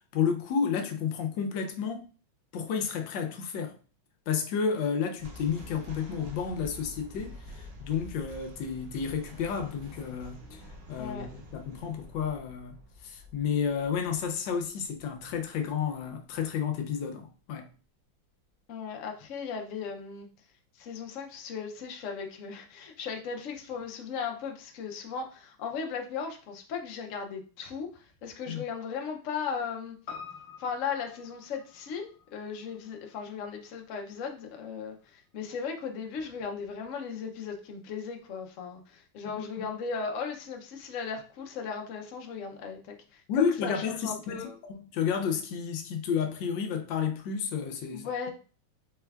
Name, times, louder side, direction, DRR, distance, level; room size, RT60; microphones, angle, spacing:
voice 1, 0.1-2.1 2.5-3.8 4.3-10.6 10.9-12.8 13.0-17.7 28.5-28.6 39.6-39.7 43.3-48.3, left 6 dB, 75° left, 1.2 m, -31 dB
sound 1, 5.2-16.5, left 1 dB, 65° right, 1.1 m, -48 dB
voice 2, 11.0-11.3 18.7-20.3 20.8-30.0 30.6-44.6 47.9-48.3, left 6 dB, 90° left, 0.6 m, -37 dB
Piano, 30.1-34.6 34.9-35.0, left 6 dB, 50° left, 1.0 m, -48 dB
4.3 x 3.3 x 2.3 m
omnidirectional pair, 2.2 m